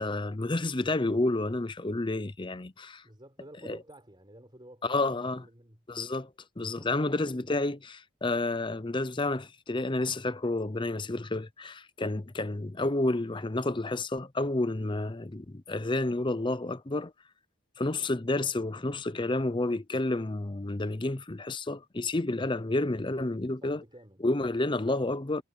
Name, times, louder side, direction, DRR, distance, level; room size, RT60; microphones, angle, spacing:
voice 1, 0.0-3.0 3.6-3.8 4.8-5.4 5.9-6.3 6.6-17.1 17.8-23.8 24.2-25.4, left 2 dB, 20° left, 0.6 m, -30 dB
voice 2, 3.0-5.8 6.8-7.3 23.6-24.3, right 1 dB, 20° right, 4.1 m, -52 dB
head